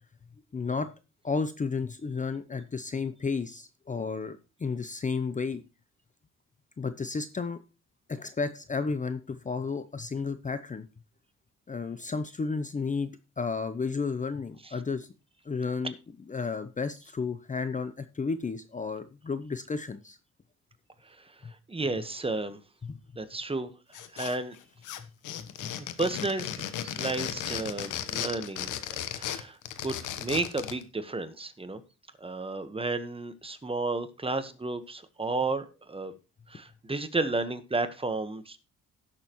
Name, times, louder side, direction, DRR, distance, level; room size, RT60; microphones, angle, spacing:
voice 1, 0.5-0.9 1.2-5.6 6.8-7.6 8.1-10.9 11.7-13.1 13.4-15.1 15.5-15.9 16.3-20.2 22.8-23.0, left 4 dB, 25° left, 11 dB, 0.7 m, -32 dB
voice 2, 21.0-21.3 21.7-22.6 23.1-23.7 24.1-24.6 25.8-28.8 29.1-29.6 29.8-31.8 32.2-36.1 36.5-38.6, right 3 dB, 20° right, 10 dB, 1.3 m, -32 dB
sound 1, 23.9-24.6 24.8-30.8, left 10 dB, 85° left, 1.1 m, -35 dB
17.0 x 6.7 x 3.1 m, 0.30 s
cardioid pair, 90°, 30 cm